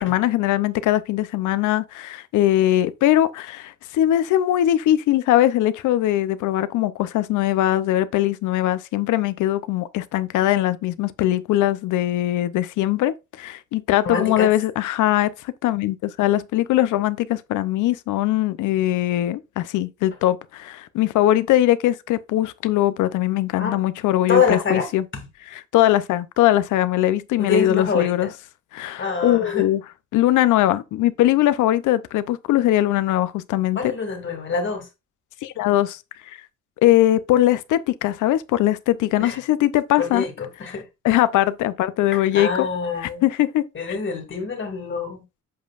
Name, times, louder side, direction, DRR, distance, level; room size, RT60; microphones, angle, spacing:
voice 1, 0.0-25.0 25.7-28.3 28.7-29.8 30.1-33.9 35.4-36.0 36.3-36.4 36.8-40.2 41.0-42.7 43.2-43.6, left 13 dB, 85° left, 0.6 m, -21 dB
voice 2, 14.0-14.6 23.6-23.8 24.3-24.9 25.1-25.2 27.4-28.3 29.0-29.7 33.7-34.9 39.2-39.4 40.0-40.9 42.1-43.2 43.7-45.2, left 5 dB, 40° left, 2.2 m, -25 dB
8.0 x 5.2 x 2.5 m
cardioid pair, 90°, 30 cm